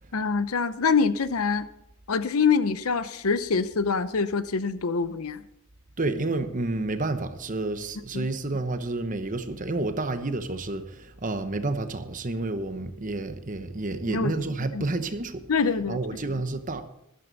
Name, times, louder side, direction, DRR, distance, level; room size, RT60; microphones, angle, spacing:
voice 1, 0.1-1.7 2.1-5.4 8.1-8.3 14.1-14.3 14.7-14.8 15.5-16.0, left 5 dB, 80° left, 0.7 m, -25 dB
voice 2, 6.0-15.5 15.9-16.8, right 2 dB, 35° right, 1.0 m, -30 dB
12.5 x 12.5 x 4.1 m
head